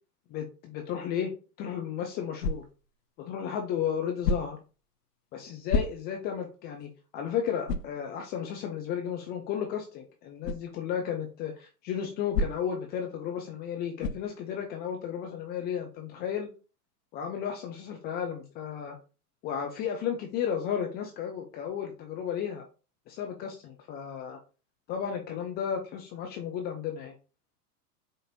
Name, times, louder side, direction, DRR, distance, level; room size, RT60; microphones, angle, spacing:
voice 1, 0.3-1.3 1.6-2.6 3.2-4.6 5.3-16.5 17.1-19.0 19.4-22.6 23.1-24.4 24.9-27.1, left 8 dB, 25° left, 2 dB, 0.3 m, -33 dB
sound 1, 2.4-2.9 4.2-4.7 5.7-6.3 6.8-6.9 7.6-8.0 10.4-10.7 12.3-12.8 14.0-14.3, left 3 dB, 85° left, 0.6 m, -30 dB
5.0 x 2.6 x 2.6 m, 0.34 s
hypercardioid pair, 95°, 47 cm